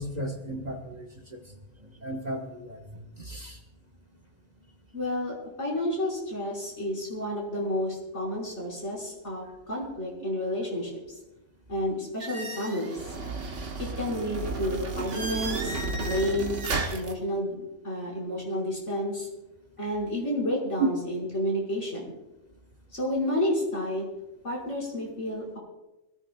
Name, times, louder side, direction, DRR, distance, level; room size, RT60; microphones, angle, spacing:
voice 1, 0.0-1.4 2.0-2.8 3.2-3.6, equal, 35° right, 2 dB, 1.6 m, -36 dB
voice 2, 4.9-11.2 11.7-13.0 13.8-19.3 19.8-22.1 22.9-24.0 24.4-25.6, left 1 dB, 65° left, -4 dB, 5.5 m, -31 dB
sound 1, 12.2-17.1, right 3 dB, 70° right, 1.7 m, -33 dB
25.5 x 15.0 x 2.4 m, 0.98 s
omnidirectional pair, 1.3 m